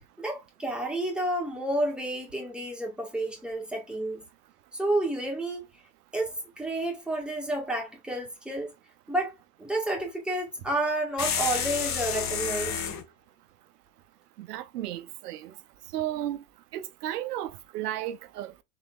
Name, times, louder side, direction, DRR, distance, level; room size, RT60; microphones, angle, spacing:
voice 1, 0.2-4.2 4.7-5.6 6.1-8.7 9.1-9.3 9.6-12.8, right 1 dB, ahead, 1.5 m, -30 dB
sound 1, 11.2-13.0, left 7 dB, 35° left, 1.4 m, -30 dB
voice 2, 14.4-15.5 15.9-16.4 16.7-18.6, right 12 dB, 85° right, 0.6 m, -34 dB
3.9 x 3.9 x 2.4 m
hypercardioid pair, 110°, 46 cm